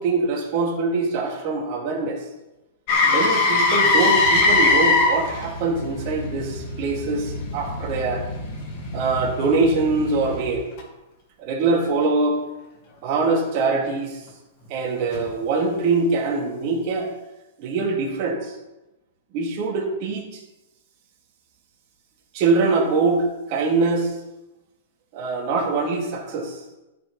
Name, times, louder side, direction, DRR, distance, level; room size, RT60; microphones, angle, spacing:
voice 1, 0.0-2.3 3.0-8.2 8.9-10.7 11.4-12.4 13.0-14.2 14.7-17.1 17.6-18.6 19.3-20.4 22.3-24.1 25.1-26.6, right 3 dB, 35° right, -1 dB, 2.7 m, -23 dB
Motor vehicle (road), 2.9-10.8 15.1-15.3, left 3 dB, 35° left, 2.4 m, -22 dB
13.5 x 6.5 x 5.5 m, 1.0 s
hypercardioid pair, 160°, 0 cm